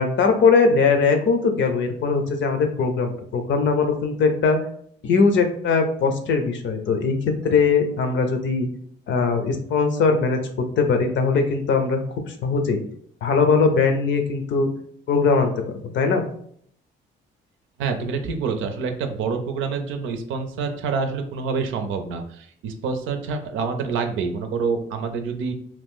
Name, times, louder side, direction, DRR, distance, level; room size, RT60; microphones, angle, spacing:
voice 1, 0.0-4.6 5.0-8.7 9.1-10.4 10.8-12.8 13.2-14.7 15.1-16.2, left 4 dB, 70° left, 6 dB, 0.7 m, -20 dB
voice 2, 17.8-25.5, right 5 dB, 90° right, 6 dB, 0.6 m, -27 dB
3.0 x 2.6 x 3.5 m, 0.63 s
cardioid pair, 90°, 20 cm